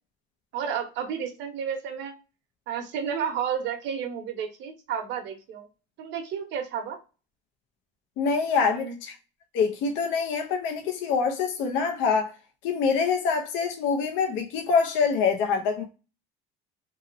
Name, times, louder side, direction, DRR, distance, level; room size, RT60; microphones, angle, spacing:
voice 1, 0.5-2.1 2.7-5.7 6.0-7.0 8.6-9.0, right 7 dB, 65° right, 1.0 m, -31 dB
voice 2, 8.2-9.1 9.5-12.3 12.6-15.8, left 5 dB, 70° left, 0.6 m, -25 dB
2.8 x 2.8 x 2.5 m
cardioid pair, 125°, 20 cm